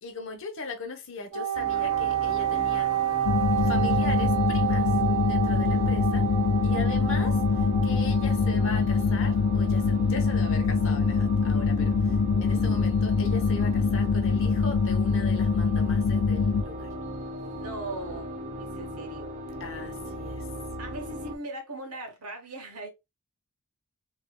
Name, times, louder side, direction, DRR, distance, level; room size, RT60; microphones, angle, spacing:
voice 1, 0.0-2.9 3.6-4.9 5.2-6.3 6.6-16.9 19.6-20.5, left 3 dB, 60° left, 0.9 m, -39 dB
Wind instrument woodwind instrument, 1.3-9.0, right 10 dB, 65° right, 0.7 m, -29 dB
sound 1, 1.5-21.3, right 1 dB, 30° right, 0.6 m, -37 dB
sound 2, 3.2-16.6, left 5 dB, 85° left, 0.4 m, -24 dB
voice 2, 17.6-19.3 20.8-22.9, right 2 dB, 80° right, 1.2 m, -39 dB
3.4 x 3.1 x 2.2 m
head